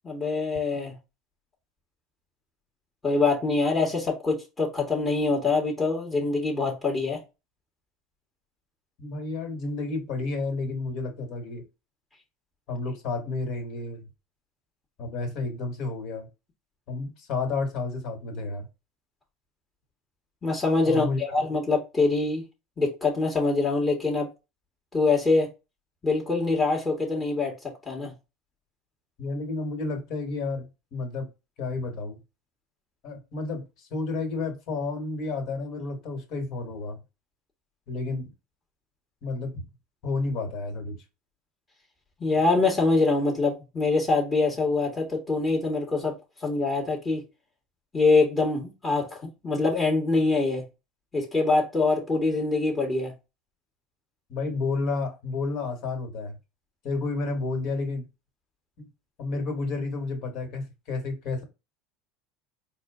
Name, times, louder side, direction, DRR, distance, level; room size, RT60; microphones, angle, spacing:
voice 1, 0.0-0.9 3.0-7.2 20.4-22.4 22.8-24.3 24.9-25.5 26.0-27.5 27.9-28.1 42.2-47.2 47.9-50.6 51.1-53.1, left 3 dB, 20° left, 1.4 m, -24 dB
voice 2, 9.0-11.6 12.7-14.0 15.0-16.3 16.9-18.7 20.8-21.2 29.2-31.3 31.6-32.2 33.0-37.0 37.9-38.3 39.2-39.7 40.0-41.0 54.3-56.4 56.8-58.1 58.8-58.9 59.2-61.4, left 3 dB, 55° left, 1.7 m, -31 dB
4.2 x 2.2 x 3.6 m
supercardioid pair, 110°, 0 cm